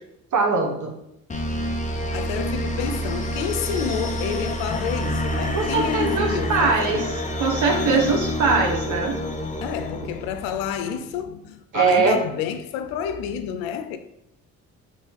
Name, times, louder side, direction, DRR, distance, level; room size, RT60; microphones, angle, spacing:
voice 1, 0.3-0.9 5.5-7.0 7.4-9.2 11.7-12.2, right 4 dB, 55° right, 1.2 m, -21 dB
sound 1, 1.3-10.7, equal, 20° left, 0.7 m, -28 dB
voice 2, 2.1-7.1 7.8-8.2 9.6-14.0, left 8 dB, 85° left, 0.5 m, -29 dB
4.1 x 3.2 x 3.6 m
supercardioid pair, 60°, 36 cm